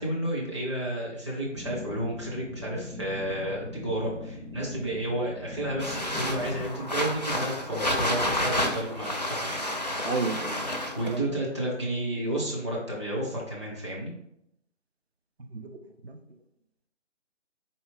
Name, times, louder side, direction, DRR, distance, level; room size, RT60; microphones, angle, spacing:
voice 1, 0.0-9.6 10.6-14.1, right 1 dB, 25° right, -5 dB, 0.8 m, -32 dB
sound 1, 1.5-6.6, left 2 dB, 85° right, 1.3 m, -40 dB
sound 2, 5.8-11.2, left 1 dB, 35° left, 0.4 m, -30 dB
voice 2, 10.0-10.6 11.0-11.5 15.4-15.8 16.0-16.2, right 3 dB, 60° right, 5 dB, 0.6 m, -32 dB
4.5 x 2.8 x 3.4 m, 0.77 s
figure-of-eight pair, 155°, 37 cm